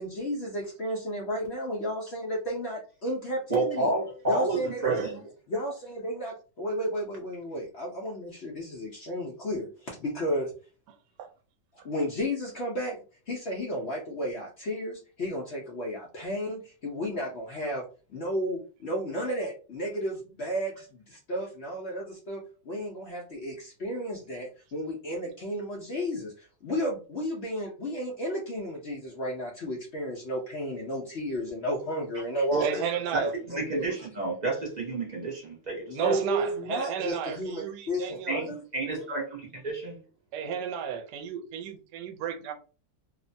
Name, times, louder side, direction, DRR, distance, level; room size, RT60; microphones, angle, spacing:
voice 1, 0.0-3.9 4.3-5.0 5.5-10.5 11.8-13.0 13.3-17.8 18.1-32.7 33.2-33.9 35.9-38.6, equal, 85° left, 0.5 m, -33 dB
voice 2, 3.5-5.2 32.5-32.8 33.1-33.2 33.5-36.1 38.3-38.5 38.7-40.0, right 2 dB, 55° right, 0.4 m, -30 dB
voice 3, 32.6-33.3 35.9-38.4 40.3-42.5, right 8 dB, 75° right, 1.1 m, -32 dB
2.9 x 2.1 x 2.5 m
omnidirectional pair, 1.9 m